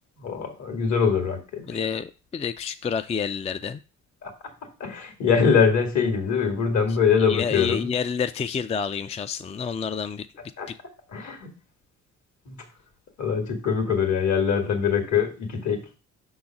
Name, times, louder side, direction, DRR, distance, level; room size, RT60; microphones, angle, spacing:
voice 1, 0.2-1.8 4.2-4.3 4.8-7.9 10.6-10.7 11.1-11.5 12.5-12.6 13.2-15.9, left 6 dB, 65° left, 2.2 m, -23 dB
voice 2, 1.7-3.8 7.3-10.3 10.7-10.8, left 6 dB, 20° left, 0.4 m, -29 dB
6.2 x 4.0 x 5.8 m
cardioid pair, 90°, 30 cm